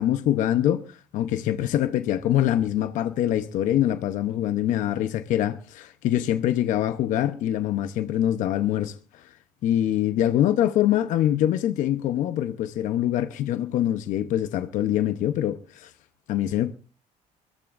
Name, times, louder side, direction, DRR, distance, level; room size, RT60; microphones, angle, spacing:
voice 1, 0.0-9.3 9.6-15.9 16.3-16.7, left 12 dB, 70° left, 0.9 m, -24 dB
23.0 x 14.5 x 2.6 m
cardioid pair, 135°, 14 cm